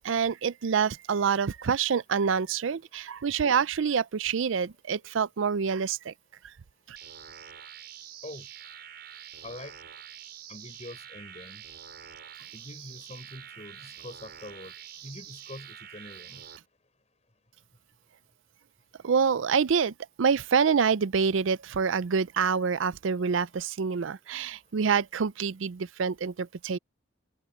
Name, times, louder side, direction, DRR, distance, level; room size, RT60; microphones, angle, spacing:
voice 1, 0.0-6.1 6.9-7.0 19.0-19.9 20.2-26.8, right 6 dB, 80° right, 0.5 m, -26 dB
sound 1, 7.0-16.6, right 9 dB, 55° right, 6.5 m, -46 dB
voice 2, 9.4-9.7 10.5-11.6 12.5-14.7 15.0-16.4, left 1 dB, 35° left, 4.5 m, -44 dB
open air
head